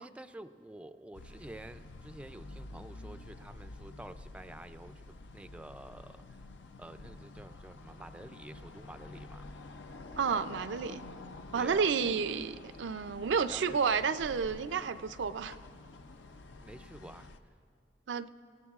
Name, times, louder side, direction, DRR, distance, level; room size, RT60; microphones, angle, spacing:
voice 1, 0.0-6.4 6.8-9.5 11.5-11.9 13.5-13.8 16.6-17.3, right 1 dB, 5° right, 9 dB, 0.3 m, -49 dB
sound 1, 1.1-17.4, left 2 dB, 80° left, 0.6 m, -49 dB
voice 2, 10.2-11.0 11.5-15.6 18.1-18.3, right 6 dB, 85° right, 11 dB, 0.4 m, -31 dB
25.5 x 17.0 x 2.4 m, 2.4 s
head